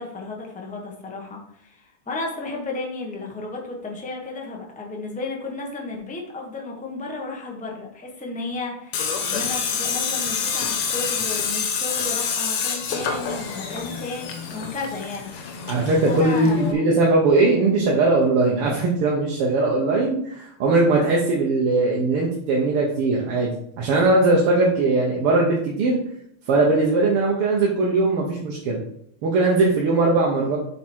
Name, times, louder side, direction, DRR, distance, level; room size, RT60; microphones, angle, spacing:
voice 1, 0.0-15.6 16.1-16.9, left 3 dB, 5° left, -1 dB, 0.9 m, -33 dB
Tools, 8.9-16.7, left 6 dB, 80° left, 1.9 m, -27 dB
voice 2, 15.7-23.5 23.8-26.0 26.5-28.8 29.2-30.6, right 3 dB, 85° right, -2 dB, 2.0 m, -20 dB
7.4 x 5.1 x 4.5 m, 0.70 s
omnidirectional pair, 2.4 m